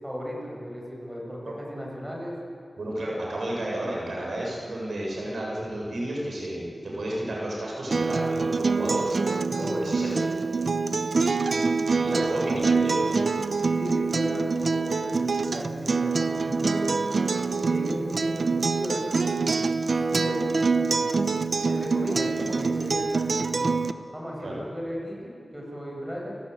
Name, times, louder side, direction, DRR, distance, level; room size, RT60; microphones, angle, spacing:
voice 1, 0.0-2.4 9.5-10.2 11.1-12.6 13.7-17.0 17.6-19.6 19.9-21.2 21.6-23.7 24.1-26.3, equal, 10° right, -3 dB, 7.9 m, -35 dB
voice 2, 2.8-9.0 9.8-10.4 11.9-13.2 22.3-22.5 24.4-24.6, right 1 dB, 80° right, -3 dB, 7.5 m, -32 dB
Acoustic guitar, 7.9-23.9, right 4 dB, 60° right, 0.9 m, -25 dB
29.5 x 19.0 x 8.5 m, 2.4 s
wide cardioid pair, 90°, 0 cm